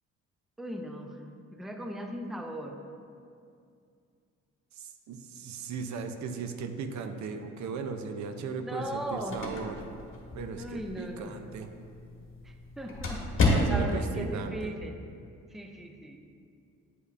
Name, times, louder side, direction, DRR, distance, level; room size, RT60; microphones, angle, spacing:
voice 1, 0.6-1.2 1.5-2.8 8.5-9.4 10.6-11.3 12.8-13.4 13.7-15.0 15.5-16.2, right 1 dB, ahead, 4 dB, 0.5 m, -38 dB
voice 2, 4.8-9.8 10.3-11.7 13.4-14.7, right 5 dB, 70° right, 7 dB, 0.6 m, -37 dB
sound 1, 8.9-14.1, left 2 dB, 45° left, 1.4 m, -31 dB
9.5 x 5.3 x 2.5 m, 2.4 s
cardioid pair, 90°, 30 cm